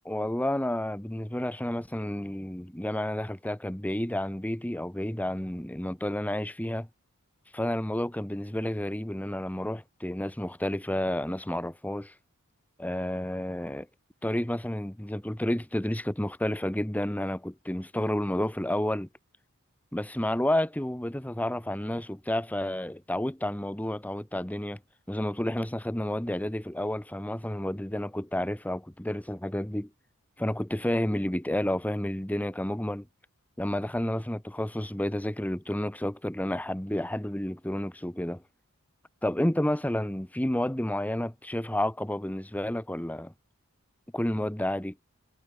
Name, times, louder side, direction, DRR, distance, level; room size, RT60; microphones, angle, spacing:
voice 1, 0.0-6.9 7.5-12.1 12.8-13.9 14.2-19.1 19.9-24.8 25.1-29.9 30.4-33.1 33.6-38.4 39.2-43.3 44.1-44.9, left 1 dB, 5° left, 1.1 m, -30 dB
head